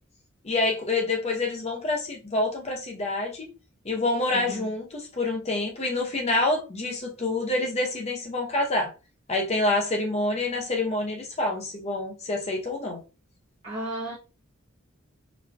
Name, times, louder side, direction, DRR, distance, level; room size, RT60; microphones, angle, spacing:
voice 1, 0.4-3.5 3.8-8.9 9.3-13.0, left 2 dB, 30° left, 0.7 m, -27 dB
voice 2, 4.3-4.7 13.6-14.2, right 1 dB, 30° right, 1.0 m, -34 dB
3.9 x 3.1 x 2.2 m
head